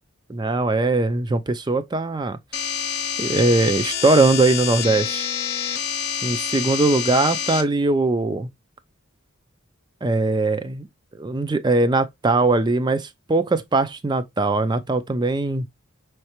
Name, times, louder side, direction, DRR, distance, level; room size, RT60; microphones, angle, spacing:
voice 1, 0.3-2.4 3.2-5.3 6.2-8.5 10.0-10.9 11.2-15.7, right 2 dB, 20° right, 0.4 m, -21 dB
sound 1, 2.5-7.6, left 8 dB, 50° left, 0.8 m, -27 dB
5.6 x 3.2 x 2.9 m
head